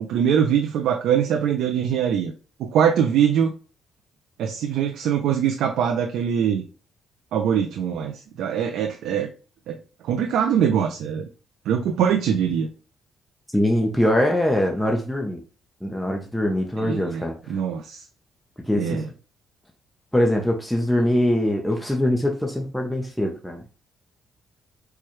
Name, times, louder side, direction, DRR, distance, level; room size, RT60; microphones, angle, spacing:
voice 1, 0.0-2.3 2.6-3.5 4.4-6.6 7.3-9.3 9.7-9.8 10.0-11.3 11.7-12.7 16.8-18.0 18.8-19.1, right 8 dB, 80° right, 4 dB, 0.4 m, -22 dB
voice 2, 13.5-15.4 15.8-17.3 18.6-19.0 20.1-23.7, left 1 dB, ahead, 1 dB, 0.7 m, -22 dB
4.6 x 2.3 x 3.0 m, 0.36 s
cardioid pair, 90°, 0 cm